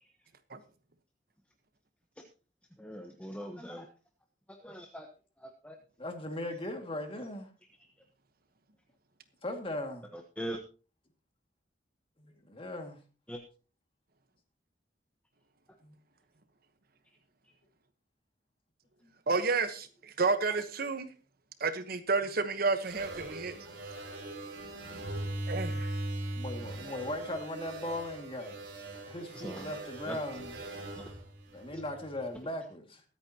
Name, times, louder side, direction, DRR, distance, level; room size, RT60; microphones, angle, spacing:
voice 1, 2.8-3.9 4.6-5.1 5.4-5.8 10.1-10.6 13.3-13.4 17.4-17.5 29.3-30.2 31.0-31.1 31.7-31.8, equal, 5° left, 3 dB, 1.1 m, -42 dB
voice 2, 6.0-7.5 9.4-10.1 12.2-13.0 15.8-15.9 19.0-19.1 26.4-28.6 29.1-30.5 31.5-33.0, left 1 dB, 30° left, 5 dB, 2.1 m, -38 dB
voice 3, 19.3-21.1 21.6-23.6 25.5-25.9, right 4 dB, 55° right, 10 dB, 1.1 m, -30 dB
sound 1, 22.8-32.2, right 1 dB, 70° right, 5.6 m, -40 dB
23.0 x 8.8 x 2.9 m, 0.35 s
head